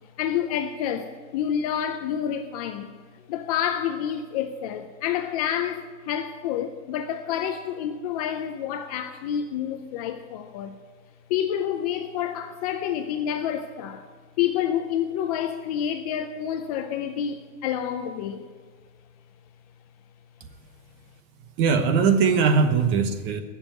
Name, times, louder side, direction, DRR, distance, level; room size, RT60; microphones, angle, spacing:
voice 1, 0.2-2.9 3.3-10.8 11.3-14.1 14.4-18.5, left 9 dB, 30° left, 0.5 m, -28 dB
voice 2, 21.6-23.4, right 5 dB, 30° right, 1.0 m, -20 dB
14.5 x 7.2 x 9.1 m
supercardioid pair, 165°, 40 cm